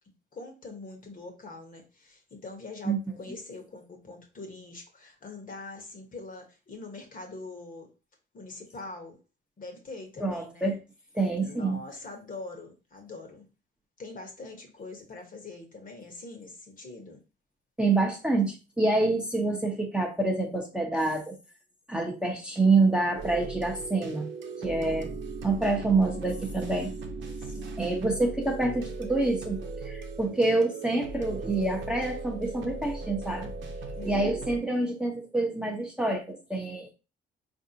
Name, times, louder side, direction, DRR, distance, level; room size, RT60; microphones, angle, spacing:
voice 1, 0.3-7.9 8.3-9.2 9.6-10.7 11.3-13.5 14.0-17.2 27.4-27.8 33.9-34.4, left 3 dB, 45° left, 1.1 m, -43 dB
voice 2, 10.2-10.8 11.1-11.8 17.8-21.4 21.9-24.3 24.6-25.1 25.4-26.9 27.8-29.6 29.8-33.5 34.0-36.9, right 2 dB, 5° right, 0.8 m, -27 dB
sound 1, 23.1-34.6, right 3 dB, 70° right, 0.8 m, -38 dB
4.0 x 2.7 x 2.7 m
cardioid pair, 90°, 20 cm